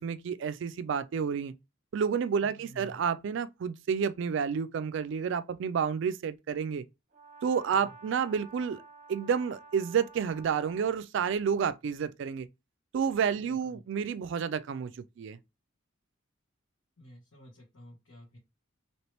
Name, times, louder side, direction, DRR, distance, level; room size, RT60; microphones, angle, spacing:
voice 1, 0.0-1.5 1.9-6.8 7.4-8.8 9.1-12.5 12.9-15.4, right 7 dB, 65° right, 0.3 m, -30 dB
voice 2, 2.4-3.0 7.7-7.9 13.3-13.8 17.0-18.4, equal, 90° left, 1.2 m, -51 dB
Brass instrument, 7.1-11.0, right 4 dB, 40° right, 0.9 m, -52 dB
3.1 x 2.9 x 2.9 m
head